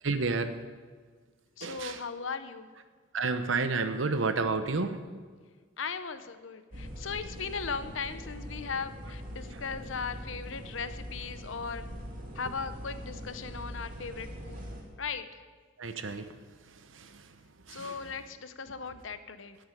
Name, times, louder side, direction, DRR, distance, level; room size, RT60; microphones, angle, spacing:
voice 1, 0.0-0.5 1.6-2.0 3.1-5.0 15.8-16.3 16.7-17.3 17.7-18.0, right 3 dB, 90° right, 10 dB, 1.0 m, -31 dB
voice 2, 1.6-2.7 5.8-11.9 12.3-14.6 15.0-15.4 17.7-19.6, left 5 dB, 90° left, 12 dB, 0.8 m, -38 dB
sound 1, 6.7-14.8, equal, 45° right, 2.5 m, -42 dB
9.9 x 8.7 x 9.3 m, 1.5 s
head